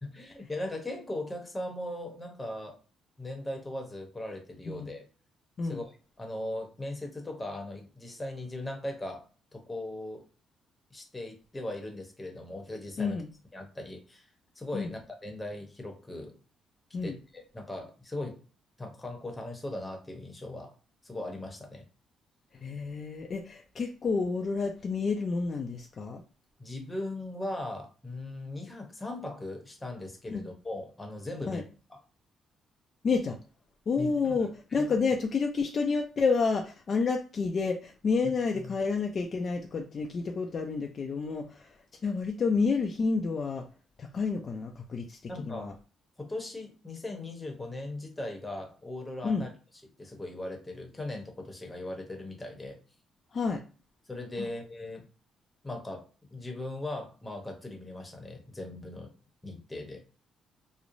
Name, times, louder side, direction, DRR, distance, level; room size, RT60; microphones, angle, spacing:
voice 1, 0.0-2.8 3.2-5.1 5.6-5.9 6.2-9.3 9.5-10.2 10.9-13.2 13.5-14.3 14.6-16.4 17.0-18.4 18.8-20.7 21.0-21.8 26.6-31.6 31.9-32.0 34.0-35.0 38.5-38.7 45.3-45.7 46.2-49.5 49.8-52.8 54.1-55.1 55.6-59.1 59.4-60.0, left 1 dB, 15° left, 3 dB, 0.8 m, -39 dB
voice 2, 13.0-13.3 14.7-14.9 16.9-17.2 22.6-26.2 30.3-30.5 31.5-31.6 33.0-33.4 33.9-41.7 42.0-43.6 44.0-45.2 45.5-45.7 49.2-49.4 53.3-53.6 54.4-54.5, left 4 dB, 45° left, 2 dB, 0.4 m, -29 dB
3.0 x 2.0 x 2.5 m, 0.36 s
cardioid pair, 90°, 0 cm